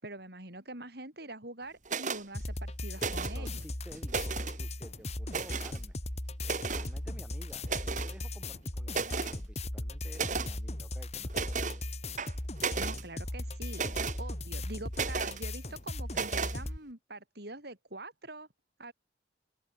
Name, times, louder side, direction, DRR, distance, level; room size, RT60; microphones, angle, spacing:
voice 1, 0.0-3.6 12.7-13.8 14.2-18.5 18.8-18.9, right 2 dB, 60° right, 6.3 m, -44 dB
sound 1, 1.8-2.2 2.9-3.5 3.9-4.6 5.3-5.8 6.4-6.9 7.6-8.1 8.5-8.6 8.9-9.4 10.1-10.5 11.3-11.8 12.2-13.0 13.7-14.2 14.9-15.4 16.1-16.6, right 5 dB, 45° right, 2.3 m, -34 dB
sound 2, 2.3-16.8, left 1 dB, 35° left, 3.0 m, -38 dB
voice 2, 3.0-6.0 6.5-11.8, equal, 5° right, 6.6 m, -53 dB
open air
head